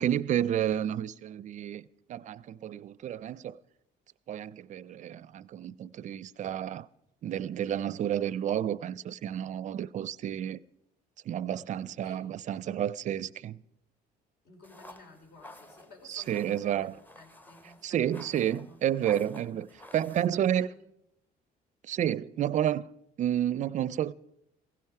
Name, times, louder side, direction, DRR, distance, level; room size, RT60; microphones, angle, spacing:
voice 1, 0.0-3.6 4.3-6.9 7.2-10.6 11.3-13.6 16.1-16.9 17.8-19.7 19.9-20.7 21.8-22.9 23.2-24.1, right 10 dB, 45° right, 0.5 m, -30 dB
voice 2, 14.4-18.8 19.5-19.6 20.2-20.8, left 2 dB, 70° left, 4.0 m, -54 dB
sound 1, 14.6-20.3, left 1 dB, 10° left, 0.7 m, -52 dB
16.0 x 16.0 x 4.7 m
cardioid pair, 110°, 17 cm